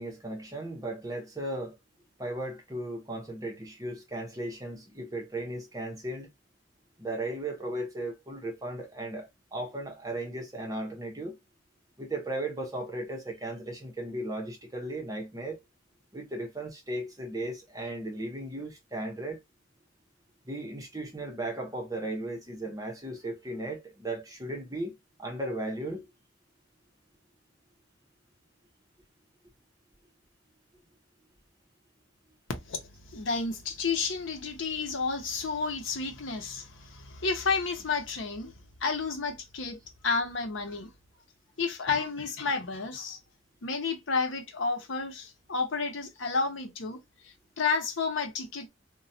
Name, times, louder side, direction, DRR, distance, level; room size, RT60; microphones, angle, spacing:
voice 1, 0.0-1.7 2.2-6.3 7.0-11.4 12.0-15.6 16.1-19.4 20.4-24.9 25.2-26.1, right 1 dB, 20° right, 0.8 m, -36 dB
voice 2, 32.7-38.5 38.8-39.8 40.0-40.9 41.6-43.2 43.6-47.0 47.6-48.7, left 4 dB, 75° left, 0.7 m, -31 dB
3.0 x 2.2 x 2.6 m
head